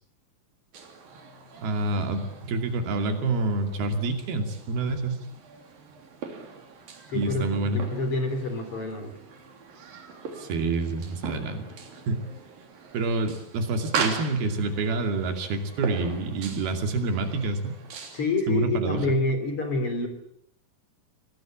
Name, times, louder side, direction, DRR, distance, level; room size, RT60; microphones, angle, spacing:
sound 1, 0.7-18.3, right 5 dB, 70° right, 5.0 m, -39 dB
voice 1, 1.6-5.2 7.1-7.8 10.4-11.7 12.1-12.2 12.9-17.7 18.5-19.0, right 3 dB, 85° right, 6 dB, 4.6 m, -27 dB
voice 2, 7.1-7.4 7.7-9.1 18.1-20.1, left 2 dB, 40° left, 8 dB, 4.1 m, -27 dB
25.0 x 19.0 x 8.9 m, 0.69 s
omnidirectional pair, 4.3 m